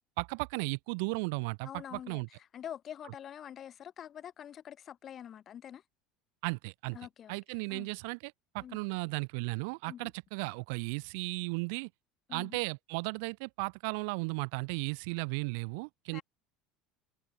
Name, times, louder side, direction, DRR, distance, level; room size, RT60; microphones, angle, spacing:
voice 1, 0.2-2.3 6.4-7.0 7.3-11.9 12.3-16.2, right 33 dB, 70° right, 0.5 m, -35 dB
voice 2, 1.6-5.8 6.9-7.9 8.6-8.8 9.9-10.1 12.3-12.6 16.1-16.2, left 9 dB, 30° left, 2.8 m, -46 dB
cardioid pair, 170°, 0 cm